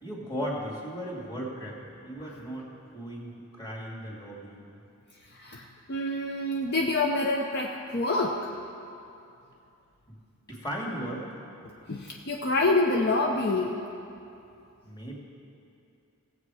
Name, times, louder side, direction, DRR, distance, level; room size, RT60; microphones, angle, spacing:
voice 1, 0.0-4.8 10.1-10.2 10.5-11.3 14.8-15.2, equal, 20° left, -5 dB, 2.3 m, -37 dB
voice 2, 5.3-8.4 11.9-13.7, left 2 dB, 50° left, 0 dB, 0.6 m, -27 dB
17.5 x 7.7 x 4.8 m, 2.7 s
head